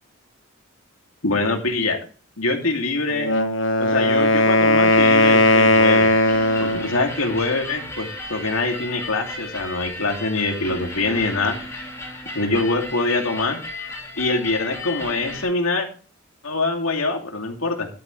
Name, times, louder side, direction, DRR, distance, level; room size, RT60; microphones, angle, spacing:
voice 1, 1.2-2.0 2.4-3.3 3.8-6.1 6.6-11.6 12.3-13.6 14.2-15.9 16.4-17.9, left 2 dB, 90° left, 3 dB, 2.7 m, -24 dB
Wind instrument woodwind instrument, 3.1-6.9, left 1 dB, 65° left, 1.2 m, -17 dB
sound 1, 4.8-15.4, left 2 dB, 15° left, 3.5 m, -34 dB
12.0 x 10.5 x 3.2 m, 0.37 s
head